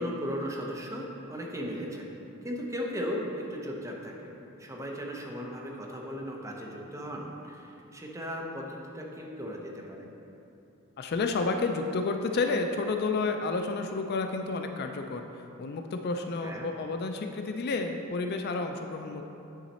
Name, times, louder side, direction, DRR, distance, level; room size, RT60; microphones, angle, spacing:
voice 1, 0.0-2.1 2.4-10.0 16.4-16.7, equal, 15° right, -1 dB, 0.7 m, -37 dB
voice 2, 11.0-19.2, left 3 dB, 50° left, 5 dB, 0.4 m, -30 dB
9.0 x 4.0 x 4.1 m, 2.8 s
head